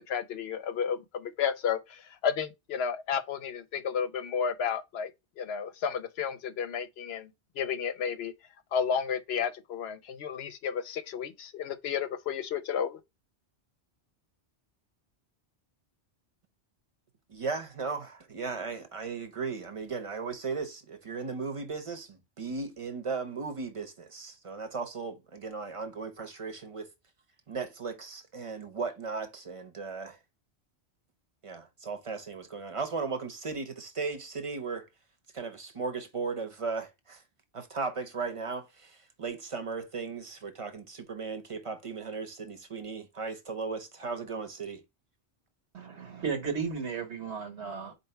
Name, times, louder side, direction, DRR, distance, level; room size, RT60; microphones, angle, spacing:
voice 1, 0.1-5.1 5.4-7.3 7.6-8.3 8.7-13.0, left 7 dB, 70° left, 0.8 m, -32 dB
voice 2, 17.3-26.9 27.5-30.2 31.4-34.9 35.3-37.2 37.5-44.8, right 4 dB, 30° right, 0.9 m, -36 dB
voice 3, 45.7-47.9, right 5 dB, 75° right, 1.5 m, -34 dB
4.4 x 2.7 x 4.3 m
omnidirectional pair, 1.2 m